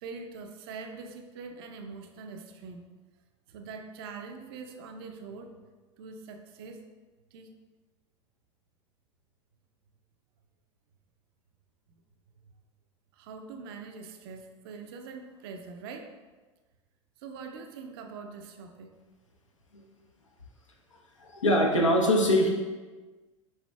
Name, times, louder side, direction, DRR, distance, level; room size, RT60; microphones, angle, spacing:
voice 1, 0.0-2.9 3.5-5.6 6.0-6.9 7.3-7.6 13.1-16.1 17.2-18.9, right 4 dB, 50° right, 5 dB, 0.5 m, -43 dB
voice 2, 21.2-22.5, equal, 75° left, -1 dB, 0.8 m, -23 dB
5.5 x 4.1 x 2.2 m, 1.3 s
figure-of-eight pair, 80°, 16 cm